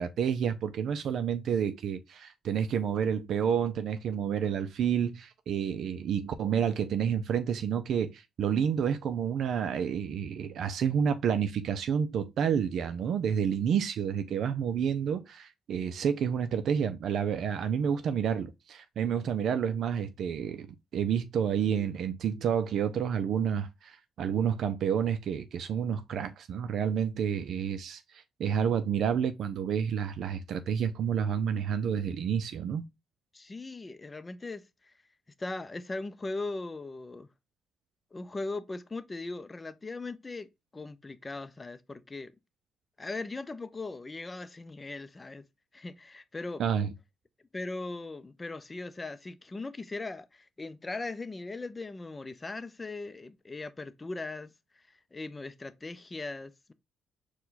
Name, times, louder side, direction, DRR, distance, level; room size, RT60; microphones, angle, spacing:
voice 1, 0.0-20.7 20.9-32.9 46.6-46.9, right 8 dB, 70° right, 0.4 m, -29 dB
voice 2, 33.3-34.6 35.4-37.3 38.1-40.5 40.7-42.3 43.0-45.4 45.7-46.7 47.5-54.5 55.1-56.7, left 3 dB, 25° left, 0.5 m, -39 dB
4.5 x 2.2 x 3.9 m
cardioid pair, 90°, 0 cm